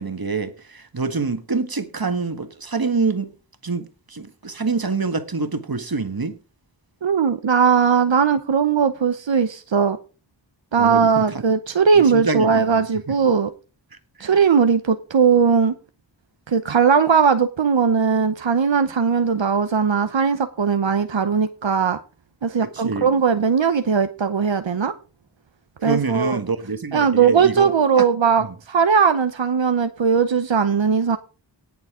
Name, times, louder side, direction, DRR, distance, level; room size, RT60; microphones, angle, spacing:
voice 1, 0.0-3.3 3.6-6.3 10.8-11.2 12.1-12.6 14.2-14.3 22.8-23.1 25.8-27.7 28.0-28.1, right 4 dB, 55° right, 1.7 m, -25 dB
voice 2, 7.0-10.0 10.7-13.5 14.2-15.7 16.5-22.0 22.4-24.9 25.8-26.4 26.9-31.2, right 6 dB, 90° right, 0.9 m, -19 dB
18.5 x 6.8 x 3.7 m
wide cardioid pair, 40°, 44 cm